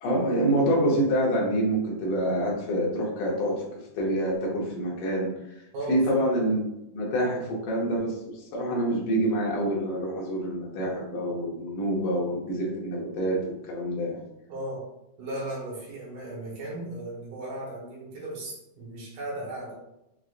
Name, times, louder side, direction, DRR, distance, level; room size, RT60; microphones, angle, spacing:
voice 1, 0.0-3.6 3.9-5.3 5.9-14.2, right 1 dB, 75° left, -3 dB, 1.4 m, -26 dB
voice 2, 5.7-6.2 14.5-14.9 15.2-19.7, right 1 dB, 65° right, -5 dB, 2.4 m, -36 dB
6.2 x 2.5 x 2.5 m, 0.87 s
omnidirectional pair, 4.1 m